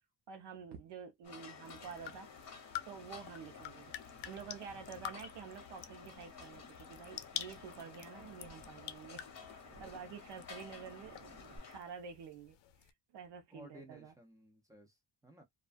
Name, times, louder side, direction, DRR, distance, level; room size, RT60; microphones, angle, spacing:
voice 1, 0.3-2.3 2.8-11.2 11.7-12.6 12.8-14.1, right 6 dB, 75° right, 0.7 m, -49 dB
sound 1, 1.2-11.8, left 6 dB, 40° left, 1.0 m, -53 dB
sound 2, 1.6-12.9, left 11 dB, 85° left, 0.5 m, -49 dB
sound 3, 6.2-11.6, right 3 dB, 50° right, 0.9 m, -62 dB
voice 2, 13.5-15.4, equal, 10° right, 0.5 m, -57 dB
2.3 x 2.2 x 2.4 m
cardioid pair, 155°, 42 cm